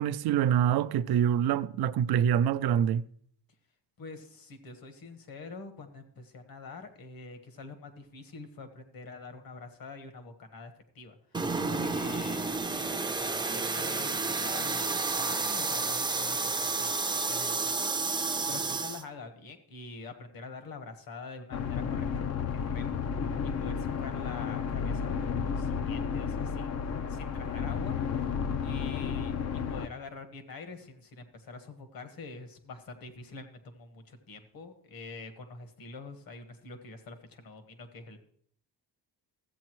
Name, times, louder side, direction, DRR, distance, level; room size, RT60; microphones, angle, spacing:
voice 1, 0.0-3.0, right 9 dB, 65° right, 0.5 m, -25 dB
voice 2, 4.0-17.9 18.5-23.0 23.4-28.2 28.6-38.2, left 3 dB, 55° left, 1.4 m, -46 dB
sound 1, 11.3-19.0, right 3 dB, 10° right, 0.5 m, -31 dB
sound 2, 21.5-29.9, left 6 dB, 40° left, 0.5 m, -32 dB
14.5 x 8.3 x 3.1 m
cardioid pair, 155°, 41 cm